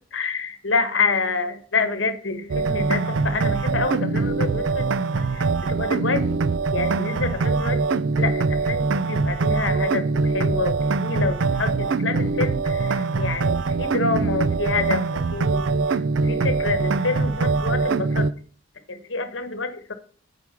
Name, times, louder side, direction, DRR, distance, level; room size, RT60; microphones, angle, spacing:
voice 1, 0.1-4.9 5.3-6.2 6.7-15.8 16.2-18.3 18.9-19.9, left 4 dB, 70° left, 10 dB, 1.4 m, -27 dB
sound 1, 2.5-18.3, right 4 dB, 75° right, 0.4 m, -23 dB
8.3 x 4.9 x 7.0 m, 0.43 s
head